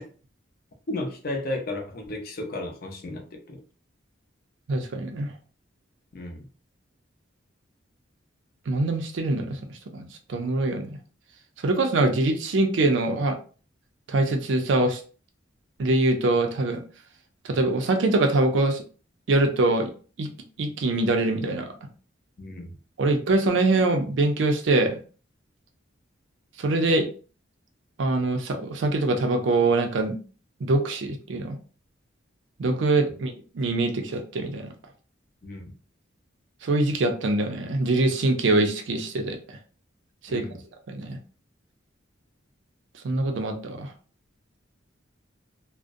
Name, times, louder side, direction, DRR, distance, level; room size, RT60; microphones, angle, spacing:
voice 1, 0.9-3.6 6.1-6.5 22.4-22.7 35.4-35.7 40.3-40.6, left 1 dB, 50° left, 3 dB, 0.5 m, -33 dB
voice 2, 4.7-5.3 8.7-9.6 9.9-11.0 11.6-13.4 14.1-15.0 15.8-16.8 17.5-18.8 19.3-19.9 20.2-20.3 20.6-21.7 23.0-25.0 26.6-27.1 28.0-30.2 30.6-31.6 32.6-34.7 36.6-39.4 40.2-40.4 40.9-41.2 43.0-43.9, right 2 dB, 65° right, 5 dB, 0.5 m, -23 dB
2.5 x 2.0 x 2.5 m, 0.38 s
head